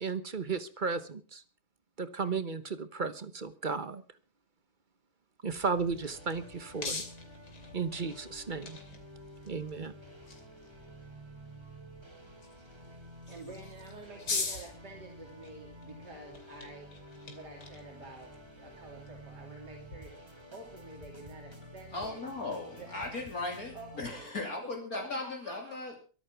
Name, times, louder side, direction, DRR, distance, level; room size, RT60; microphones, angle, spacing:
voice 1, 0.0-1.4 2.0-4.0 5.4-7.0 7.7-8.8 9.5-9.9, right 5 dB, 35° right, 13 dB, 1.1 m, -34 dB
sound 1, 5.5-20.0, left 4 dB, 90° left, 3.4 m, -44 dB
sound 2, 5.7-24.3, equal, 15° right, 2.9 m, -51 dB
voice 2, 13.3-16.9 17.3-22.2 22.8-23.3 23.7-24.3 24.6-24.7 24.9-25.8, right 2 dB, 75° right, 1 dB, 3.7 m, -49 dB
voice 3, 21.9-26.0, left 2 dB, 60° left, 1 dB, 3.5 m, -37 dB
23.5 x 8.7 x 5.9 m, 0.39 s
omnidirectional pair, 1.8 m